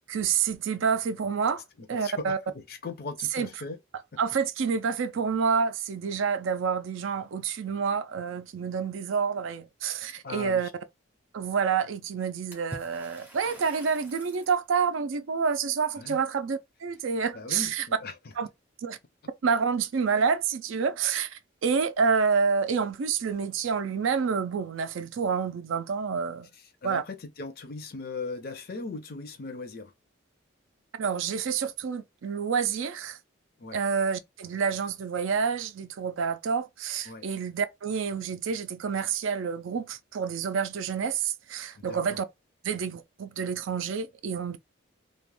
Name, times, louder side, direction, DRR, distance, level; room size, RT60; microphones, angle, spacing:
voice 1, 0.1-1.6 1.9-2.4 3.3-3.5 4.2-10.7 11.3-17.8 18.4-18.5 18.8-19.0 19.4-26.5 26.8-27.0 31.0-33.2 33.7-42.3 42.6-44.6, right 6 dB, 70° right, 0.4 m, -28 dB
voice 2, 1.8-3.8 10.2-10.7 16.0-16.2 17.3-18.2 26.5-29.9 33.6-33.8 37.1-37.3 41.8-42.2, left 3 dB, 45° left, 0.5 m, -39 dB
Water / Splash splatter, 12.5-14.6, right 1 dB, 10° right, 0.5 m, -45 dB
2.3 x 2.1 x 3.0 m
head